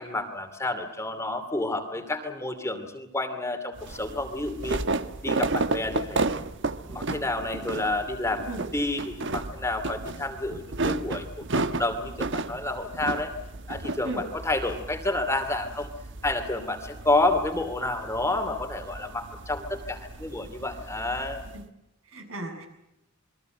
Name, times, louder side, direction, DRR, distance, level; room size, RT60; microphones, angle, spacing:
voice 1, 0.0-4.8 5.2-6.3 6.9-8.4 8.7-11.3 11.5-13.3 13.7-15.9 16.2-21.4, left 2 dB, 15° left, 7 dB, 2.6 m, -29 dB
sound 1, 3.8-21.6, right 3 dB, 60° right, 1.3 m, -33 dB
voice 2, 22.1-22.7, right 2 dB, 75° right, 5 dB, 7.6 m, -35 dB
28.5 x 22.0 x 7.9 m, 0.88 s
head